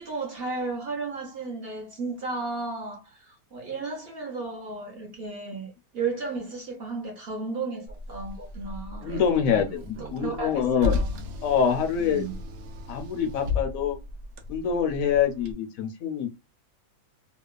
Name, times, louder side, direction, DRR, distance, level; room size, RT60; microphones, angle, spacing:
voice 1, 0.0-9.1 10.2-11.2 12.0-12.4, right 3 dB, 50° right, 0.8 m, -34 dB
Car, 7.9-15.5, left 3 dB, 80° right, 1.1 m, -34 dB
voice 2, 9.0-11.0 11.4-12.2 12.9-14.0 14.5-16.3, left 7 dB, 75° left, 1.0 m, -25 dB
2.9 x 2.2 x 2.2 m
omnidirectional pair, 1.5 m